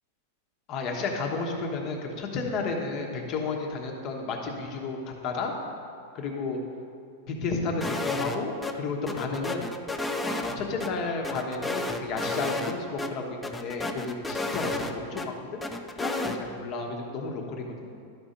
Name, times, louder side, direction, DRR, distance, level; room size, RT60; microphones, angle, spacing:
voice 1, 0.7-5.5 6.1-6.6 7.3-9.7 10.2-15.6 15.9-17.6, left 3 dB, 35° left, 1 dB, 1.1 m, -32 dB
sound 1, 7.8-8.4 8.6-8.7 9.1-10.9 11.2-12.7 13.0-13.1 13.4-15.3 15.6-16.4, left 2 dB, 5° left, 0.4 m, -31 dB
12.0 x 4.3 x 5.2 m, 2.4 s
supercardioid pair, 160°, 0 cm